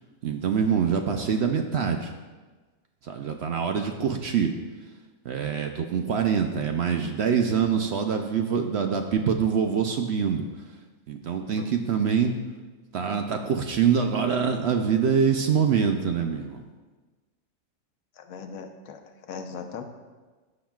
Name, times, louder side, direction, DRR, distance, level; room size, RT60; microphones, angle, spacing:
voice 1, 0.2-2.1 3.0-4.5 5.2-10.5 11.1-12.3 12.9-16.6, right 6 dB, 65° right, 5 dB, 0.7 m, -25 dB
voice 2, 11.6-11.9 18.2-19.8, left 6 dB, 85° left, 6 dB, 1.2 m, -39 dB
14.5 x 5.9 x 2.4 m, 1.3 s
omnidirectional pair, 1.5 m